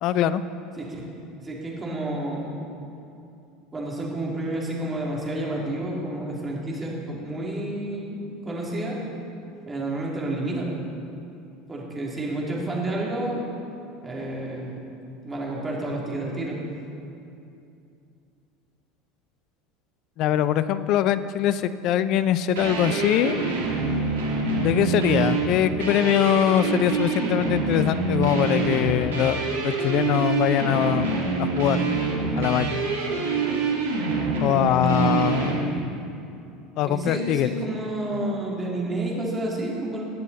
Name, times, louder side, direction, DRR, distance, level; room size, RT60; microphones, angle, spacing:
voice 1, 0.0-0.4 20.2-23.4 24.6-31.1 31.6-31.8 32.4-32.8 34.4-35.8 36.8-37.5, left 11 dB, 55° left, 14 dB, 0.5 m, -22 dB
voice 2, 0.8-1.1 1.4-2.6 3.7-8.2 8.4-9.0 9.7-10.8 11.7-13.4 14.0-14.9 15.2-16.6 34.9-35.9 36.8-40.0, right 1 dB, 25° right, -3 dB, 3.0 m, -30 dB
sound 1, 22.6-35.6, right 3 dB, 80° right, 1.9 m, -26 dB
18.5 x 7.3 x 4.2 m, 2.7 s
hypercardioid pair, 80°, 0 cm